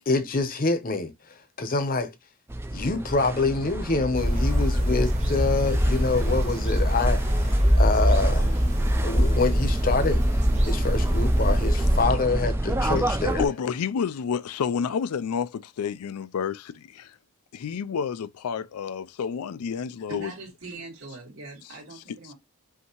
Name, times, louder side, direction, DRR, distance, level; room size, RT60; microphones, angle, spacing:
voice 1, 0.1-2.1 2.7-8.6 9.0-13.4, left 3 dB, 40° left, 0.8 m, -26 dB
sound 1, 2.5-13.5, right 1 dB, 10° right, 0.4 m, -29 dB
sound 2, 4.1-12.0, equal, 30° right, 1.1 m, -23 dB
voice 2, 13.4-17.1 17.5-20.3, left 6 dB, 80° left, 0.4 m, -29 dB
voice 3, 20.1-22.3, right 2 dB, 70° right, 2.6 m, -41 dB
5.6 x 2.7 x 2.9 m
head